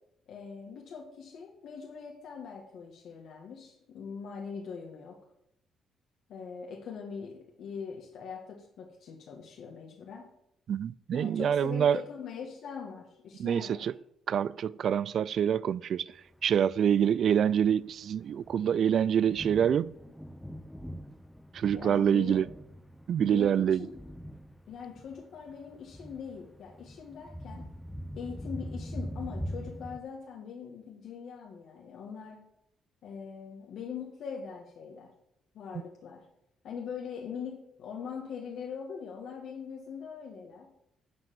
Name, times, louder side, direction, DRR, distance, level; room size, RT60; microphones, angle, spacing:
voice 1, 0.3-5.2 6.3-10.3 11.1-13.9 21.7-22.5 23.2-24.0 24.7-27.7 28.1-32.4 33.0-35.1 35.5-36.3 36.6-40.7, left 6 dB, 70° left, 1.7 m, -42 dB
voice 2, 10.7-12.0 13.4-13.9 14.3-16.1 16.4-19.9 21.5-22.5 23.1-23.9, right 8 dB, 60° right, 0.3 m, -26 dB
Thunder, 16.3-30.0, equal, 5° left, 0.6 m, -43 dB
11.0 x 4.9 x 7.6 m
cardioid pair, 90°, 0 cm